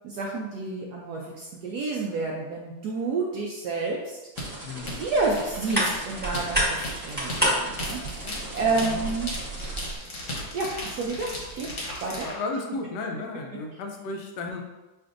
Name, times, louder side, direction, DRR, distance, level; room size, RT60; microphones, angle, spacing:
voice 1, 0.0-4.2 5.0-9.4 10.5-11.3 11.5-11.7 12.0-12.3, right 3 dB, 80° right, -2 dB, 0.8 m, -29 dB
sound 1, 4.3-9.9, right 1 dB, 30° right, 1.3 m, -41 dB
sound 2, 4.4-12.4, left 1 dB, 50° left, 1.1 m, -36 dB
voice 2, 4.6-5.0 8.2-9.1 12.2-14.6, left 3 dB, 75° left, 3 dB, 1.0 m, -34 dB
sound 3, 4.8-10.0, right 1 dB, 5° right, 1.1 m, -30 dB
6.6 x 2.5 x 2.5 m, 1.1 s
omnidirectional pair, 2.3 m